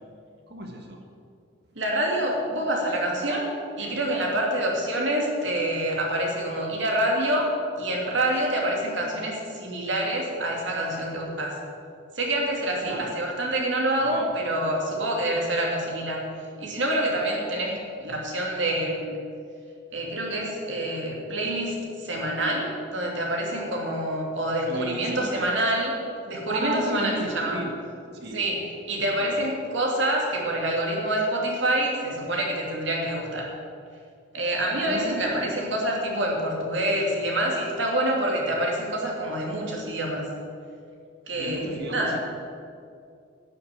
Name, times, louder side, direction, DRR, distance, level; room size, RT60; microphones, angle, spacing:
voice 1, 0.5-1.0 12.8-13.1 14.0-14.3 24.7-25.5 26.5-27.7 28.1-28.4 29.2-29.5 34.8-36.2 41.4-42.2, right 2 dB, 55° right, 2 dB, 1.5 m, -34 dB
voice 2, 1.7-11.6 12.2-16.3 16.6-19.1 19.9-26.0 26.3-27.6 28.3-33.5 34.3-40.3 41.3-42.2, right 1 dB, 70° right, -1 dB, 2.6 m, -27 dB
12.0 x 6.7 x 9.2 m, 2.3 s
head